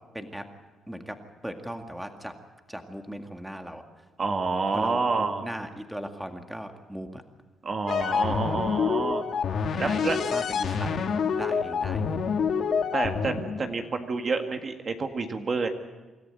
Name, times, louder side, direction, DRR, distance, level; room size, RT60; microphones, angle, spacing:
voice 1, 0.1-0.4 0.9-1.2 1.4-2.3 2.7-3.8 4.7-7.2 9.8-12.2, equal, 5° right, 5 dB, 2.0 m, -38 dB
voice 2, 4.2-5.5 7.6-9.2 9.8-10.2 12.9-15.7, right 4 dB, 40° right, 5 dB, 1.8 m, -28 dB
sound 1, 7.9-13.6, left 6 dB, 60° left, 1.7 m, -27 dB
26.0 x 13.5 x 9.0 m, 1.3 s
cardioid pair, 90°, 0 cm